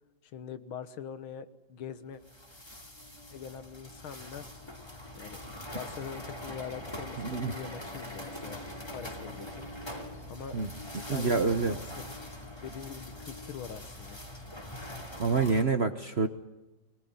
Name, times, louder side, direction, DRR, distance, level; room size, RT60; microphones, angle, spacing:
voice 1, 0.2-2.2 3.3-4.5 5.1-5.4 5.7-8.6 8.9-9.7 10.3-10.5 10.9-12.1 12.6-14.2, left 7 dB, 80° left, 12 dB, 2.0 m, -43 dB
sound 1, 2.2-15.6, left 1 dB, 10° left, 2.7 m, -43 dB
voice 2, 7.2-7.5 10.5-10.7 11.1-11.8 15.2-16.3, right 4 dB, 40° right, 9 dB, 1.0 m, -27 dB
23.0 x 19.5 x 9.6 m, 1.0 s
omnidirectional pair, 2.2 m